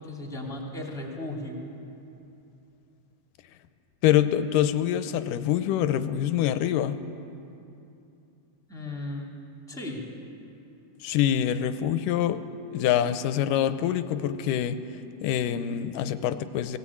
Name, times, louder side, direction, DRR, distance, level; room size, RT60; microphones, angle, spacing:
voice 1, 0.0-1.6 8.7-9.3 9.7-10.0, left 1 dB, ahead, -1 dB, 2.3 m, -35 dB
voice 2, 4.0-7.0 11.0-12.4 12.7-14.8 15.2-16.8, left 10 dB, 90° left, 11 dB, 2.3 m, -25 dB
18.5 x 17.0 x 8.6 m, 2.8 s
omnidirectional pair, 3.8 m